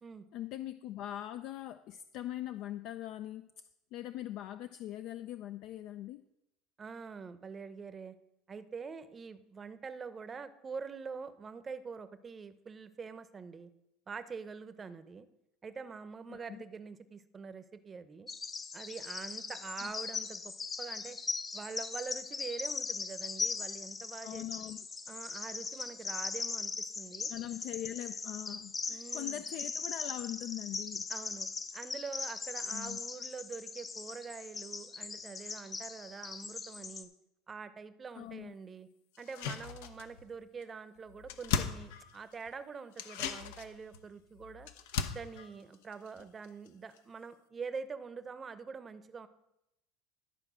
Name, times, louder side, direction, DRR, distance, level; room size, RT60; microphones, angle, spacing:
voice 1, 0.3-3.6 3.9-6.2 16.3-16.6 19.8-19.9 24.2-24.8 27.3-31.1 32.7-33.0 38.2-38.5, left 13 dB, 60° left, 10 dB, 0.4 m, -42 dB
voice 2, 6.8-8.2 8.5-13.7 14.1-15.3 15.6-18.3 18.7-20.5 20.8-21.2 21.5-24.5 25.1-27.3 28.9-29.4 31.1-37.1 37.5-38.9 39.2-44.7 45.1-49.3, right 5 dB, 25° right, 12 dB, 0.7 m, -45 dB
Bird vocalization bird call bird song, 18.3-37.0, left 4 dB, 25° left, 0.9 m, -40 dB
sound 1, 39.2-40.3 40.6-40.7 41.0-42.5 42.9-46.7 47.0-47.1, left 7 dB, 85° left, 0.8 m, -38 dB
12.0 x 4.3 x 6.2 m, 0.87 s
supercardioid pair, 120°, 0 cm